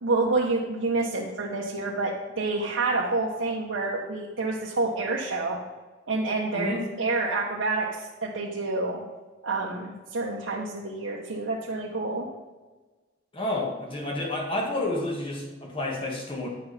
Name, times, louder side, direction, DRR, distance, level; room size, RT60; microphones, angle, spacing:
voice 1, 0.0-5.6 6.1-9.0 9.4-12.3, right 3 dB, 75° right, -3 dB, 0.9 m, -28 dB
voice 2, 6.5-6.9 13.3-16.5, left 1 dB, 25° left, 0 dB, 1.4 m, -30 dB
9.3 x 5.9 x 4.1 m, 1.3 s
head